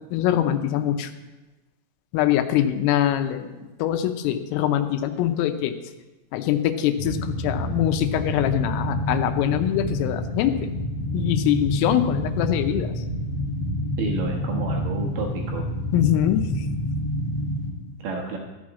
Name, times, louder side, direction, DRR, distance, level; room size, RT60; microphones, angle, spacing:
voice 1, 0.1-1.1 2.1-5.7 6.3-10.7 11.1-13.0 15.9-16.7, left 11 dB, 85° left, 8 dB, 3.3 m, -23 dB
sound 1, 7.0-17.7, equal, 35° left, 2.7 m, -28 dB
voice 2, 14.0-15.7 18.0-18.4, right 4 dB, 85° right, 0 dB, 1.9 m, -30 dB
13.5 x 6.4 x 7.2 m, 1.1 s
omnidirectional pair, 5.9 m